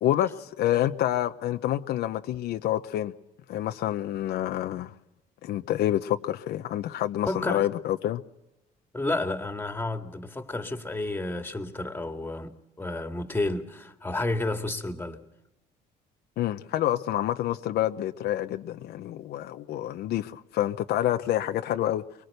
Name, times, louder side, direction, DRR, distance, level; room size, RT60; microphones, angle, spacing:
voice 1, 0.0-3.1 3.5-4.9 5.4-8.2 16.4-22.0, left 12 dB, 75° left, 1.0 m, -28 dB
voice 2, 7.3-7.7 8.9-15.2, left 2 dB, 10° left, 2.2 m, -31 dB
23.5 x 23.0 x 6.7 m
cardioid pair, 110°, 17 cm